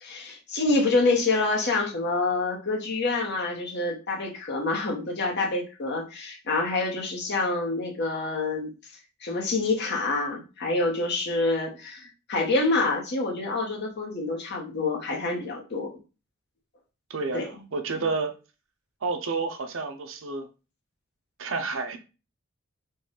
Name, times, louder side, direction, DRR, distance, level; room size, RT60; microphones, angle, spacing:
voice 1, 0.0-8.7 9.2-15.9 17.3-17.5, left 3 dB, 50° left, 1.1 m, -27 dB
voice 2, 17.1-18.3 19.0-20.5 21.4-22.0, right 4 dB, 65° right, 0.6 m, -30 dB
4.0 x 2.4 x 3.8 m
head